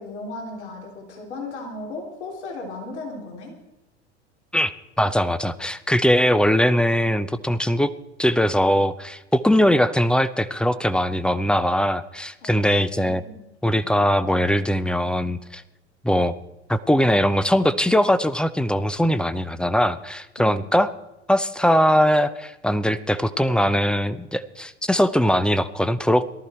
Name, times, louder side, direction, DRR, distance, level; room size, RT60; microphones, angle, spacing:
voice 1, 0.0-3.5 12.4-13.4 20.4-20.6, left 2 dB, 70° left, 0 dB, 3.5 m, -36 dB
voice 2, 5.0-7.9 8.2-13.2 13.6-15.6 16.0-16.3 16.7-20.9 21.3-26.2, equal, 5° left, 14 dB, 0.6 m, -21 dB
18.5 x 13.5 x 4.4 m, 0.98 s
figure-of-eight pair, 80°, 35 cm